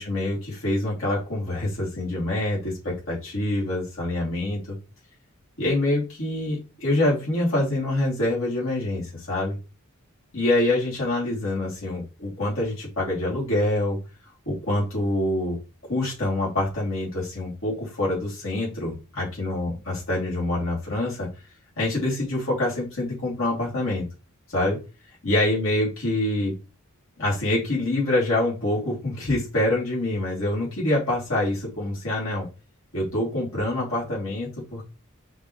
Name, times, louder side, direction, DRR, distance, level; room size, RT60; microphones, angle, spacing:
voice 1, 0.0-4.8 5.6-9.5 10.3-14.0 14.4-15.6 15.9-21.3 21.8-24.0 24.5-24.8 25.2-26.6 27.2-32.5 32.9-34.9, left 1 dB, 65° left, -5 dB, 3.2 m, -25 dB
5.7 x 5.7 x 3.3 m, 0.30 s
head